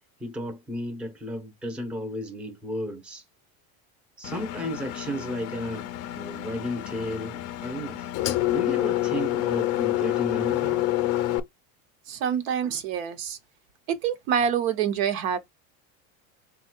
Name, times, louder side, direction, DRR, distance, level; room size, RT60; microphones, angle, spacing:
voice 1, 0.2-3.2 4.2-5.9 6.1-8.1 8.5-10.8, equal, 5° right, 0.7 m, -33 dB
Engine, 4.2-11.4, left 15 dB, 40° left, 0.5 m, -28 dB
voice 2, 12.1-13.4 13.9-15.4, right 8 dB, 75° right, 1.0 m, -26 dB
4.1 x 2.3 x 4.4 m
supercardioid pair, 145°, 41 cm